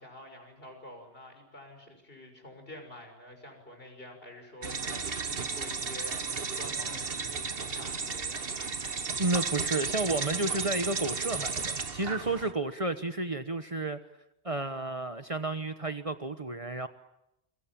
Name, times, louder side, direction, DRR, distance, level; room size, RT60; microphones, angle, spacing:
voice 1, 0.0-8.5, left 1 dB, 60° left, 5 dB, 6.5 m, -48 dB
sound 1, 4.6-12.5, right 5 dB, 60° right, 1.6 m, -34 dB
voice 2, 9.2-14.0 14.4-16.9, right 2 dB, 35° right, 9 dB, 1.1 m, -31 dB
29.0 x 24.0 x 7.5 m, 0.86 s
omnidirectional pair, 1.1 m